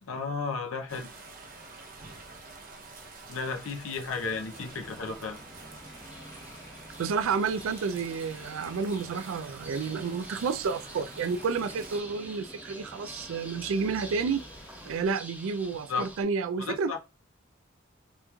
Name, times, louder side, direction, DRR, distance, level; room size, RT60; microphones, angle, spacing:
voice 1, 0.0-1.1 3.3-5.4 15.9-16.1 16.6-17.0, left 4 dB, 80° left, 0.6 m, -33 dB
sound 1, 0.9-12.0, right 3 dB, 45° right, 0.7 m, -48 dB
sound 2, 4.1-15.1, equal, 15° left, 0.8 m, -50 dB
sound 3, 6.1-16.2, right 1 dB, 10° right, 0.4 m, -48 dB
voice 2, 7.0-14.4 14.9-17.0, right 5 dB, 75° right, 0.3 m, -30 dB
3.4 x 2.9 x 2.3 m
head